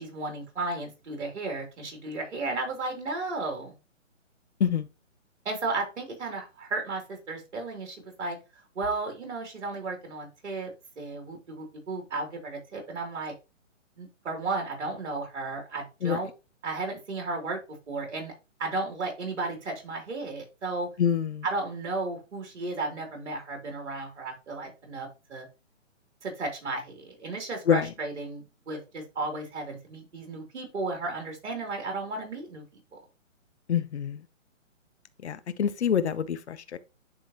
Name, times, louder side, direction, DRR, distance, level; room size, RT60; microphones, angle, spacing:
voice 1, 0.0-3.7 5.4-8.4 8.7-13.3 14.0-16.3 16.6-17.6 17.9-18.3 18.6-20.9 21.4-25.5 26.2-32.6 32.9-33.0, right 3 dB, 60° right, 3.2 m, -34 dB
voice 2, 21.0-21.4 27.7-27.9 33.7-34.2 35.2-36.8, left 8 dB, 60° left, 0.8 m, -26 dB
10.5 x 3.8 x 2.9 m
hypercardioid pair, 160°, 39 cm